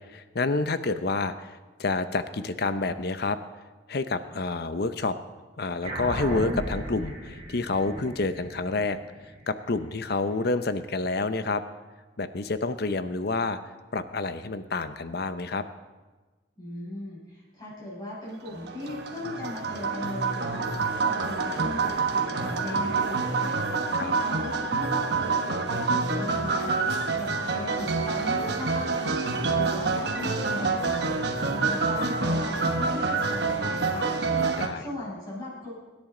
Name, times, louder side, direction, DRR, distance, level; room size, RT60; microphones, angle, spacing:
voice 1, 0.1-3.4 3.9-5.2 5.6-9.0 9.5-11.6 12.2-13.6 13.9-15.6 23.9-24.1 34.6-34.8, left 3 dB, 60° left, 11 dB, 0.7 m, -28 dB
sound 1, 5.8-10.6, right 1 dB, 35° right, 2.9 m, -36 dB
voice 2, 16.6-23.6 23.9-26.7 27.1-29.2 29.6-31.2 31.5-34.1 34.7-35.7, left 1 dB, 25° left, -7 dB, 5.6 m, -38 dB
sound 2, 18.5-34.7, right 4 dB, 60° right, 1.1 m, -27 dB
24.5 x 10.5 x 3.9 m, 1.3 s
head